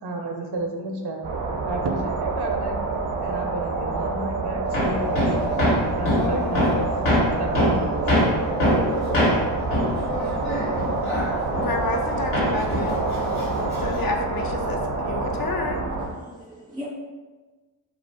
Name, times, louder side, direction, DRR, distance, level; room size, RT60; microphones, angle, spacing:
voice 1, 0.0-1.2 1.7-2.8 3.2-8.5, right 2 dB, 55° right, 2 dB, 0.6 m, -32 dB
sound 1, 1.2-16.1, right 3 dB, 85° right, 0.6 m, -27 dB
Hammer, 4.7-12.1 12.3-14.1, left 1 dB, 75° left, 1.2 m, -24 dB
voice 2, 11.6-13.0 13.6-15.8, left 3 dB, 45° left, 3 dB, 0.5 m, -30 dB
voice 3, 16.0-16.9, left 1 dB, 10° right, -5 dB, 0.3 m, -39 dB
2.5 x 2.4 x 3.4 m, 1.3 s
cardioid pair, 50°, 49 cm